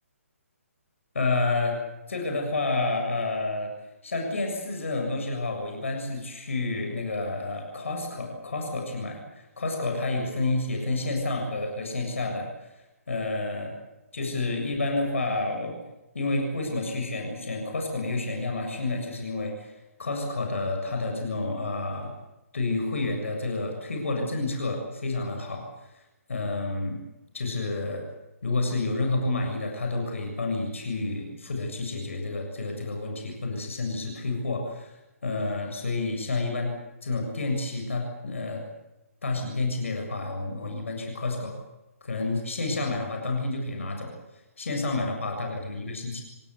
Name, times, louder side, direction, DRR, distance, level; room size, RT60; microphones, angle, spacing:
voice 1, 1.1-1.8 2.1-3.7 4.0-13.7 14.1-15.8 16.1-19.7 20.0-22.1 22.5-25.9 26.3-27.0 27.3-28.0 28.4-34.9 35.2-36.8 37.0-38.7 39.2-41.5 42.0-44.1 44.6-46.2, left 2 dB, 60° left, 3 dB, 7.3 m, -29 dB
27.5 x 19.0 x 8.3 m, 0.99 s
figure-of-eight pair, 135°, 8 cm